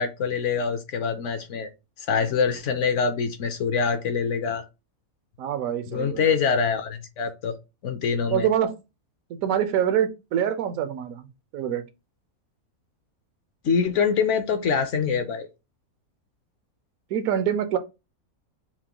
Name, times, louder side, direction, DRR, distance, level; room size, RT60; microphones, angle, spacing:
voice 1, 0.0-1.7 2.0-4.6 5.9-7.6 7.8-8.5 13.6-15.5, left 6 dB, 65° left, 0.9 m, -25 dB
voice 2, 5.4-6.3 8.3-8.7 9.3-11.3 11.5-11.8 17.1-17.8, right 9 dB, 75° right, 1.0 m, -25 dB
5.8 x 2.2 x 2.9 m
omnidirectional pair, 1.5 m